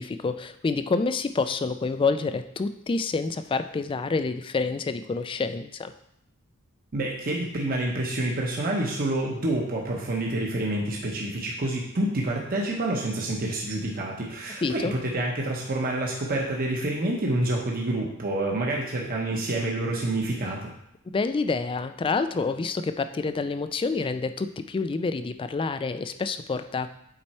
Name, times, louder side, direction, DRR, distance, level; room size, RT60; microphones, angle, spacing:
voice 1, 0.0-5.9 14.6-14.9 21.1-26.9, left 4 dB, 25° left, 10 dB, 0.3 m, -28 dB
voice 2, 6.9-20.7, right 1 dB, 45° right, -1 dB, 0.9 m, -28 dB
7.6 x 4.3 x 4.3 m, 0.77 s
head